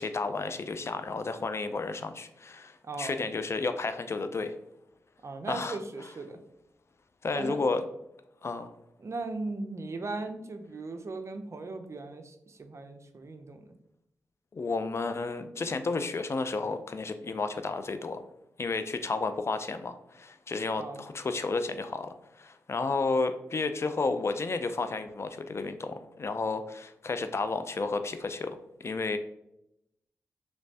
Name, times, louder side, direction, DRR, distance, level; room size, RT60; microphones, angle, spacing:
voice 1, 0.0-4.5 5.5-5.8 7.2-7.8 8.4-8.7 14.5-18.2 18.6-29.2, left 3 dB, 45° left, 9 dB, 0.4 m, -32 dB
voice 2, 2.8-3.3 5.2-6.4 7.3-7.6 9.0-13.7 20.8-21.0, right 3 dB, 50° right, 7 dB, 0.5 m, -38 dB
3.2 x 3.1 x 2.7 m, 0.81 s
supercardioid pair, 40°, 6 cm